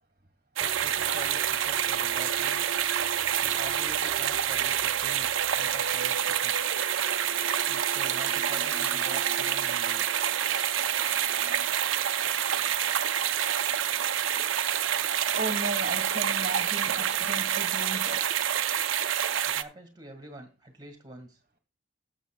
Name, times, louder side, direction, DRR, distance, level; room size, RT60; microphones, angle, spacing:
voice 1, 0.6-2.7 3.4-6.7 7.7-10.0 19.5-21.4, right 1 dB, 20° right, 4 dB, 1.8 m, -46 dB
sound 1, 0.6-11.6, right 3 dB, 70° right, 0.9 m, -43 dB
sound 2, 0.6-19.6, right 10 dB, 85° right, 0.6 m, -27 dB
voice 2, 15.3-18.2, right 2 dB, 40° right, 4 dB, 1.4 m, -35 dB
19.0 x 7.4 x 2.3 m, 0.30 s
head